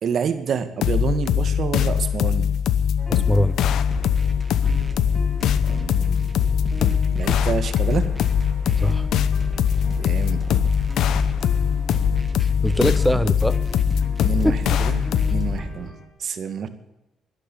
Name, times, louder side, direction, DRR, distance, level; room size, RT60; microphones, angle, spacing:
voice 1, 0.0-2.5 5.7-6.2 7.1-8.1 9.9-10.4 12.8-13.0 14.2-16.7, right 7 dB, 60° right, 9 dB, 1.9 m, -28 dB
sound 1, 0.8-15.6, left 8 dB, 80° left, 0.8 m, -21 dB
sound 2, 3.0-16.1, right 1 dB, 25° left, 3.8 m, -42 dB
voice 2, 3.1-3.6 8.8-9.1 12.4-13.6 14.4-14.6, equal, ahead, 12 dB, 0.7 m, -22 dB
sound 3, 3.9-15.9, right 1 dB, 20° right, 1.7 m, -34 dB
12.0 x 12.0 x 8.5 m, 0.95 s
cardioid pair, 90°, 0 cm